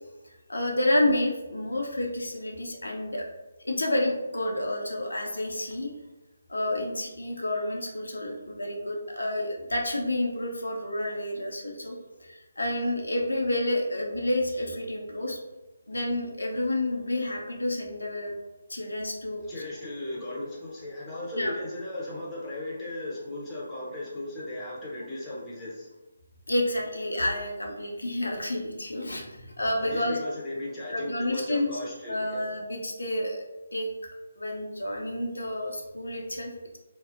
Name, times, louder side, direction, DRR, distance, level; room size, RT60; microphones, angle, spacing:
voice 1, 0.5-3.3 3.6-5.9 6.5-11.9 12.2-15.4 15.9-18.3 18.7-19.4 21.4-21.5 26.5-30.2 30.9-31.7 32.1-33.4 33.7-33.9 34.4-36.8, left 1 dB, 90° left, 0 dB, 0.5 m, -29 dB
voice 2, 19.5-25.9 29.8-32.6, left 1 dB, 10° left, -7 dB, 0.7 m, -36 dB
2.5 x 2.0 x 2.5 m, 1.1 s
figure-of-eight pair, 155°, 0 cm